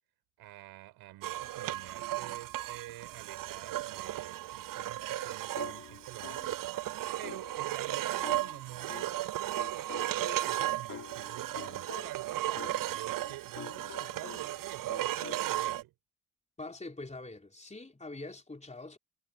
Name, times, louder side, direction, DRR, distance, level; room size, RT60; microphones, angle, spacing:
voice 1, 0.4-6.9 7.2-15.9, right 16 dB, 85° right, 5.8 m, -48 dB
sound 1, 1.2-15.8, right 14 dB, 60° right, 0.7 m, -35 dB
sound 2, 5.6-6.7 7.2-9.3 9.6-14.6 14.9-15.5, left 6 dB, 50° left, 7.4 m, -48 dB
voice 2, 16.6-19.0, left 2 dB, 20° left, 4.0 m, -44 dB
supercardioid pair, 60°, 37 cm